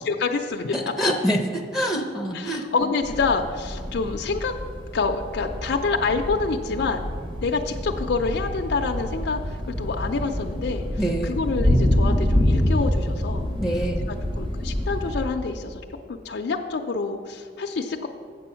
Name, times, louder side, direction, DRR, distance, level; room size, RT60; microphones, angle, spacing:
voice 1, 0.0-0.8 2.3-4.5 4.9-7.1 7.4-10.9 11.2-13.5 14.1-18.1, left 4 dB, 65° left, 3 dB, 0.4 m, -27 dB
voice 2, 0.7-2.7 11.0-11.5 13.6-14.1, equal, ahead, 1 dB, 0.6 m, -26 dB
sound 1, 3.0-15.3, left 1 dB, 30° right, 1.0 m, -26 dB
7.7 x 6.8 x 5.6 m, 2.1 s
head